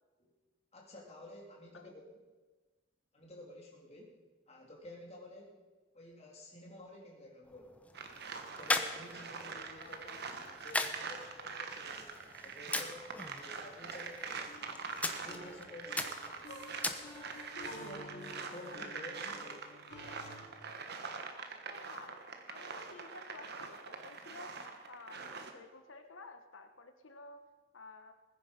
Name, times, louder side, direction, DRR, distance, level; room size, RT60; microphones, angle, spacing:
voice 1, 0.7-2.2 3.1-4.2 4.5-5.5 5.9-7.8 8.4-10.1 10.4-14.7 15.2-16.3 17.7-19.6, left 1 dB, 35° left, -2 dB, 3.5 m, -52 dB
sound 1, 7.4-17.5, left 2 dB, 5° left, 0.9 m, -41 dB
sound 2, 7.9-25.5, right 5 dB, 55° right, 1.5 m, -44 dB
voice 2, 9.5-10.4 18.7-19.0 21.7-24.6 24.9-27.5 27.7-28.1, left 3 dB, 85° left, 7 dB, 1.3 m, -53 dB
sound 3, 14.5-20.5, left 1 dB, 60° left, 2.9 m, -51 dB
20.0 x 10.0 x 5.4 m, 1.3 s
head